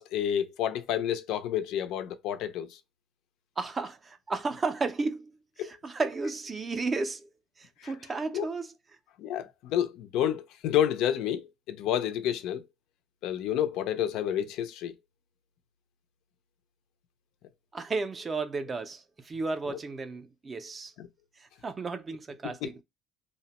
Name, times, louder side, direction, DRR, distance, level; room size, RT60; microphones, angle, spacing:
voice 1, 0.0-2.8 5.6-5.7 7.8-7.9 8.3-8.5 9.2-12.6 13.2-14.9 19.7-19.8 21.0-21.1 22.4-22.7, left 10 dB, 65° left, 0.4 m, -30 dB
voice 2, 3.6-5.3 5.6-7.3 7.6-8.7 17.7-20.9 21.4-22.8, right 3 dB, 20° right, 0.3 m, -33 dB
2.8 x 2.1 x 2.8 m
cardioid pair, 170°, 0 cm